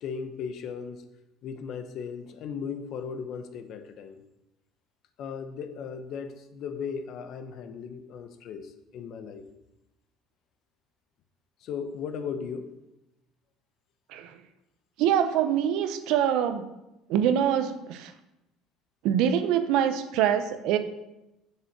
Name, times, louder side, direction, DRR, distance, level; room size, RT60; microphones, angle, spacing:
voice 1, 0.0-1.0 1.4-4.2 5.2-9.4 11.6-12.7, left 6 dB, 60° left, 9 dB, 1.0 m, -37 dB
voice 2, 15.0-16.7 17.1-18.1 19.0-20.8, right 9 dB, 75° right, 10 dB, 0.8 m, -24 dB
7.3 x 6.5 x 6.1 m, 0.92 s
cardioid pair, 115°, 0 cm